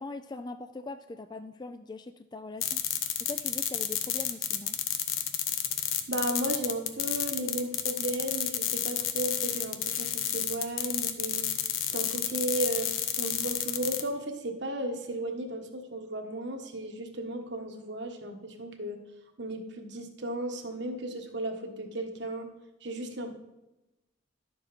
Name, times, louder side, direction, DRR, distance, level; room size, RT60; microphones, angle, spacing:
voice 1, 0.0-2.8 3.2-4.8, left 3 dB, 20° left, 9 dB, 0.3 m, -41 dB
sound 1, 2.6-14.0, left 10 dB, 85° left, 0.9 m, -30 dB
voice 2, 6.1-11.5 11.9-12.9 13.2-19.0 19.4-22.5 22.8-23.3, right 1 dB, 60° right, 4 dB, 1.4 m, -34 dB
11.5 x 7.3 x 4.4 m, 0.96 s
head